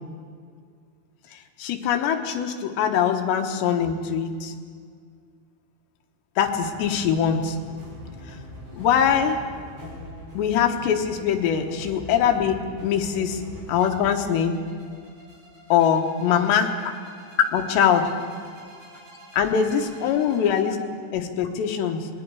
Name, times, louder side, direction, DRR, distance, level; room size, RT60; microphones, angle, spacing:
voice 1, 1.3-4.5 6.4-7.6 8.8-9.4 10.3-13.4 13.7-14.6 15.7-16.7 17.5-18.1 19.3-20.8 21.1-22.1, left 8 dB, 85° left, 4 dB, 3.5 m, -22 dB
sound 1, 6.4-20.6, equal, 40° right, 7.5 m, -43 dB
26.0 x 20.5 x 4.8 m, 2.1 s
omnidirectional pair, 4.9 m